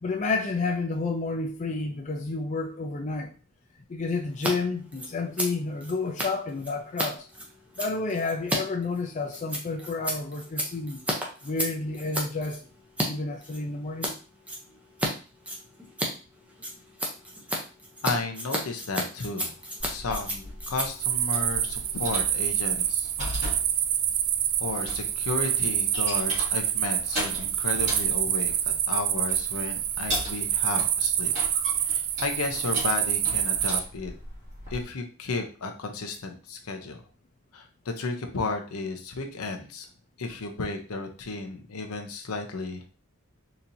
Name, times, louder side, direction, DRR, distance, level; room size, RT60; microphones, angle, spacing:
voice 1, 0.0-3.3 3.9-7.2 7.8-11.0 11.4-12.6 13.1-14.1, left 3 dB, 35° left, 0.4 m, -30 dB
Scissors, 4.3-4.5 4.8-13.1 13.4-14.1 14.4-15.1 15.4-22.2, equal, 5° right, 0.6 m, -33 dB
voice 2, 18.0-19.5 19.8-23.1 24.6-31.3 31.9-34.1 34.7-37.0 37.5-39.9 40.2-42.9, left 3 dB, 85° left, 0.7 m, -33 dB
sound 1, 19.8-34.8, equal, 35° right, 1.9 m, -38 dB
sound 2, 21.0-33.8, right 10 dB, 85° right, 0.4 m, -27 dB
4.2 x 2.9 x 2.6 m
head